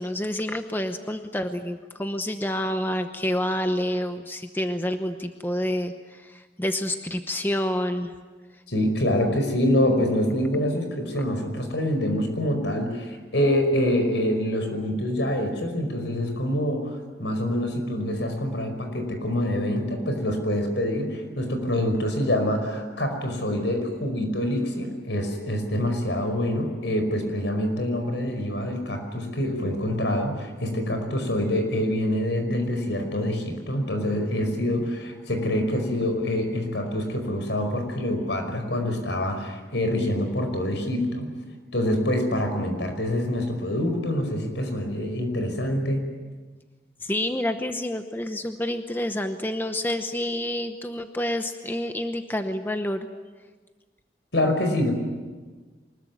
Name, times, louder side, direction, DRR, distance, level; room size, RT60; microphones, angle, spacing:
voice 1, 0.0-8.1 47.0-53.1, left 1 dB, 10° left, 7 dB, 0.9 m, -28 dB
voice 2, 8.7-41.3 41.7-46.0 54.3-54.9, left 1 dB, 75° left, 5 dB, 5.2 m, -26 dB
24.5 x 21.5 x 9.4 m, 1.4 s
head